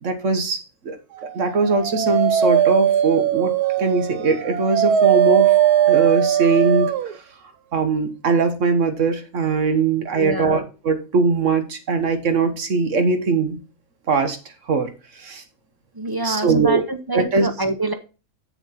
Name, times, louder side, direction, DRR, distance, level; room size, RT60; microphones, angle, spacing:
voice 1, 0.0-1.0 1.3-3.5 3.8-5.5 5.9-6.9 7.7-13.6 14.1-14.4 14.7-14.9 15.2-15.4 16.2-16.9 17.1-17.5, right 4 dB, 55° right, 8 dB, 1.5 m, -21 dB
Dog, 1.5-7.1, right 10 dB, 85° right, 1.2 m, -19 dB
voice 2, 10.2-10.7 16.0-17.9, right 2 dB, 25° right, 7 dB, 0.5 m, -25 dB
7.1 x 7.1 x 4.2 m, 0.31 s
omnidirectional pair, 1.6 m